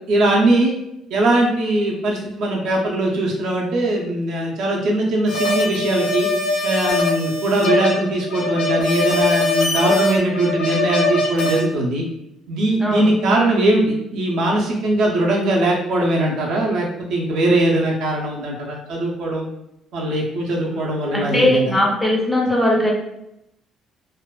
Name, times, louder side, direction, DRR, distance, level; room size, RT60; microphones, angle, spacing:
voice 1, 0.1-0.7 1.1-6.3 6.6-12.0 12.5-19.5 19.9-21.8, right 1 dB, 65° right, -2 dB, 0.6 m, -20 dB
sound 1, 5.3-11.6, left 2 dB, 90° left, 0.7 m, -21 dB
voice 2, 21.1-22.9, left 1 dB, 5° left, -3 dB, 0.4 m, -19 dB
2.5 x 2.2 x 2.3 m, 0.83 s
cardioid pair, 160°, 0 cm